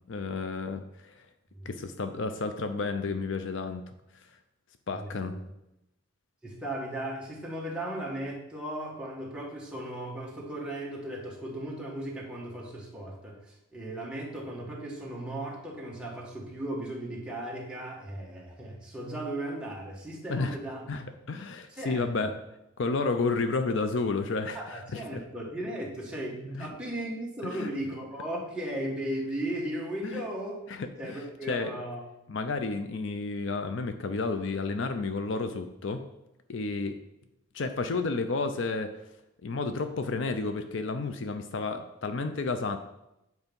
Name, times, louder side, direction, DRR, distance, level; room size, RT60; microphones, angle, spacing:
voice 1, 0.1-1.2 1.7-3.9 4.9-5.4 20.3-20.6 20.9-22.3 22.8-25.2 26.6-26.7 27.4-27.7 30.0-30.2 30.7-31.2 31.5-31.7 32.3-36.1 36.5-37.0 37.5-39.0 39.4-42.8, left 3 dB, 60° left, 8 dB, 0.5 m, -31 dB
voice 2, 4.9-5.4 6.4-20.9 21.7-22.3 24.5-30.6 31.0-32.0, right 1 dB, 5° right, -3 dB, 1.4 m, -36 dB
8.1 x 4.7 x 5.3 m, 0.87 s
head